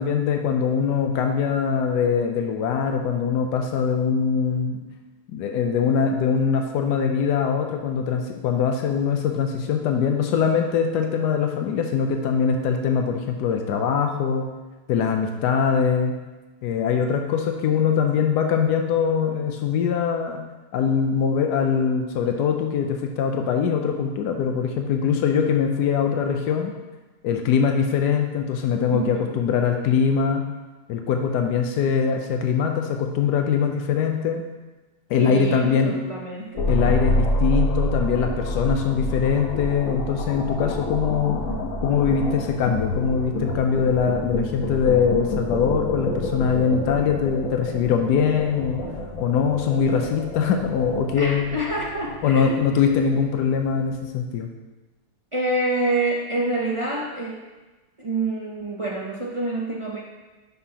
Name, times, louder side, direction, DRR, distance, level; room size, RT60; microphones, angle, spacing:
voice 1, 0.0-4.8 5.3-14.5 14.9-16.1 16.6-20.4 20.7-26.7 27.2-30.5 30.9-34.4 35.1-35.9 36.7-41.4 41.8-48.8 49.2-51.4 52.2-54.5, left 6 dB, 90° left, 4 dB, 1.2 m, -22 dB
voice 2, 28.9-29.4 35.2-36.7 51.2-52.6 55.3-57.4 58.0-60.0, right 2 dB, 45° right, -3 dB, 0.4 m, -27 dB
sound 1, 36.6-53.8, left 1 dB, 60° left, 1.2 m, -28 dB
9.8 x 5.6 x 2.9 m, 1.2 s
omnidirectional pair, 1.7 m